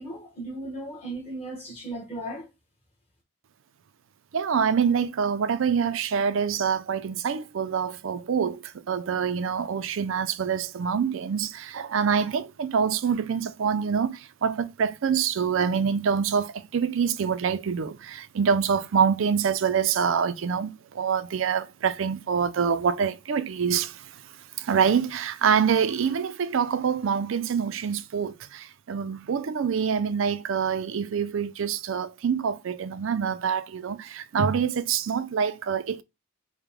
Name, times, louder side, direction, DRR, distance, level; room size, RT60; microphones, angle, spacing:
voice 1, 0.0-2.5, right 1 dB, 25° left, 1.0 m, -36 dB
voice 2, 4.3-24.1 24.6-36.0, right 6 dB, 65° right, 0.4 m, -26 dB
4.8 x 2.1 x 3.4 m
head